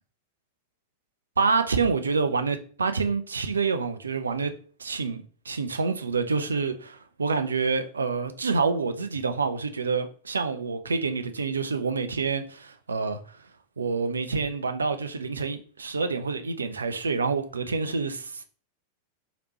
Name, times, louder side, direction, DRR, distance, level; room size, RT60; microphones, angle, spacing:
voice 1, 1.4-4.5 4.8-13.2 13.8-18.4, right 4 dB, 75° right, 0.4 m, -27 dB
3.2 x 2.9 x 3.0 m
figure-of-eight pair, 90°, 0 cm